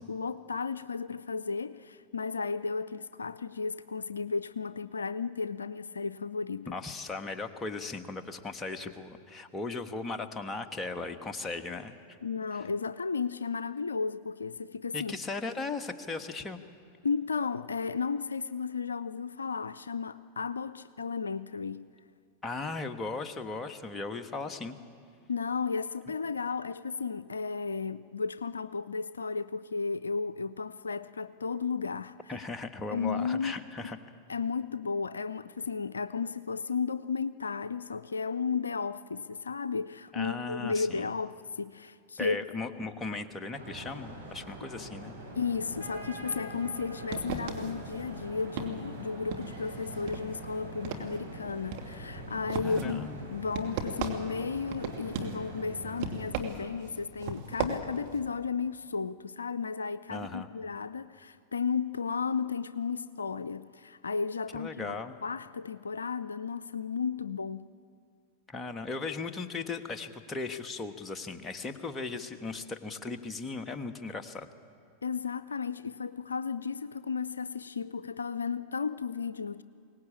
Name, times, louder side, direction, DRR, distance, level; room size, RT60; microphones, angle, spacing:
voice 1, 0.0-6.8 12.2-15.1 17.0-21.9 25.3-32.3 32.9-33.5 34.3-42.5 45.3-65.0 65.2-67.7 75.0-79.6, left 5 dB, 85° left, 0.5 m, -34 dB
voice 2, 6.7-12.0 14.9-16.6 22.4-24.8 32.3-34.0 40.1-41.1 42.2-45.1 52.6-53.2 60.1-60.5 64.5-65.1 68.5-74.5, left 3 dB, 20° left, 1.5 m, -37 dB
sound 1, 43.5-56.3, right 1 dB, 85° right, 4.3 m, -44 dB
sound 2, 46.5-58.3, right 5 dB, 55° right, 2.4 m, -39 dB
22.5 x 18.5 x 8.7 m
figure-of-eight pair, 95°, 0 cm